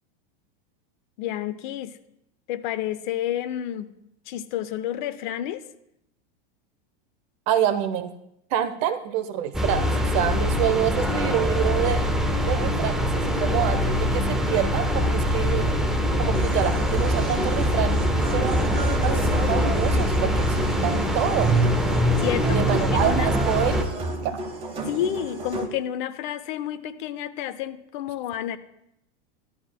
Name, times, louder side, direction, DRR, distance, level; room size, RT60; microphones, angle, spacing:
voice 1, 1.2-2.0 2.5-3.9 4.3-5.6 22.2-23.3 24.8-28.6, left 11 dB, 55° left, 12 dB, 0.7 m, -30 dB
voice 2, 7.5-8.2 8.5-12.1 12.4-15.7 16.2-18.0 18.3-21.6 22.5-23.8 24.2-24.4, right 10 dB, 40° right, 10 dB, 0.8 m, -27 dB
sound 1, 9.5-23.8, equal, ahead, 0.5 m, -23 dB
sound 2, 16.3-25.7, right 2 dB, 20° right, 1.2 m, -32 dB
14.0 x 11.5 x 2.2 m, 0.80 s
supercardioid pair, 155°, 29 cm